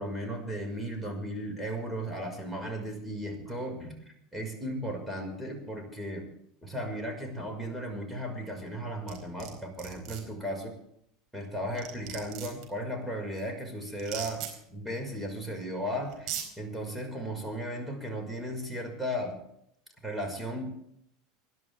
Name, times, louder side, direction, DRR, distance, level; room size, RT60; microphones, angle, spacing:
voice 1, 0.0-4.0 4.3-6.3 6.6-10.7 11.3-14.4 14.7-19.4 20.0-20.7, equal, ahead, 1 dB, 5.6 m, -35 dB
sound 1, 9.1-9.5 9.8-10.2 11.4-11.5 11.8-12.6 14.0-14.5 15.6-15.7 16.1-16.5, right 10 dB, 50° right, 4.3 m, -37 dB
26.5 x 11.5 x 3.6 m, 0.74 s
hypercardioid pair, 75°, 0 cm